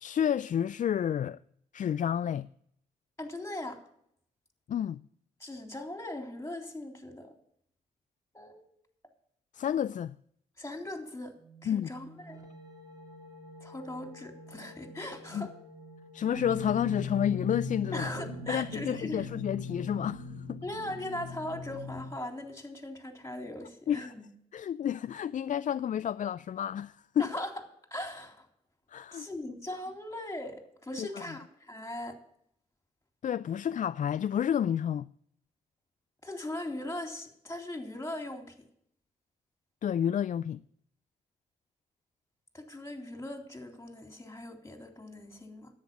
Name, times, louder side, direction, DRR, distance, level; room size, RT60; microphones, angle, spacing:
voice 1, 0.0-1.4 1.7-2.5 4.7-5.0 9.5-10.1 11.7-11.9 15.3-15.5 16.1-18.1 18.5-20.6 23.9-24.1 24.5-27.3 28.9-29.3 31.0-31.2 33.2-35.1 39.8-40.6, left 9 dB, 45° left, 0.4 m, -30 dB
voice 2, 3.2-3.8 5.4-7.3 8.3-8.7 10.6-11.4 11.6-12.4 13.6-15.5 17.9-19.3 20.6-24.3 27.2-27.5 27.9-28.5 29.1-32.1 36.2-38.5 42.5-45.7, left 1 dB, 15° left, 3.6 m, -39 dB
sound 1, 11.3-20.2, right 1 dB, 20° right, 4.0 m, -52 dB
sound 2, 16.3-22.1, left 3 dB, 80° right, 1.7 m, -39 dB
10.5 x 8.7 x 7.3 m
hypercardioid pair, 40°, 18 cm